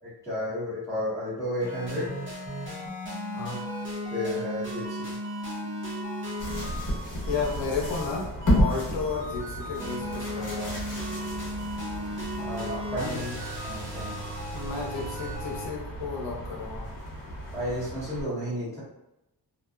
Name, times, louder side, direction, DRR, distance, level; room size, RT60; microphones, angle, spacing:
voice 1, 0.0-2.1 4.1-5.1 12.3-14.2 17.5-18.8, equal, 5° left, -11 dB, 0.8 m, -32 dB
sound 1, 1.6-15.7, equal, 25° right, 0.7 m, -36 dB
sound 2, 6.4-18.2, equal, 45° left, 0.9 m, -32 dB
voice 2, 7.3-10.8 13.0-13.4 14.5-16.9, left 4 dB, 80° left, -2 dB, 0.8 m, -33 dB
2.6 x 2.2 x 2.2 m, 0.91 s
wide cardioid pair, 165°, 43 cm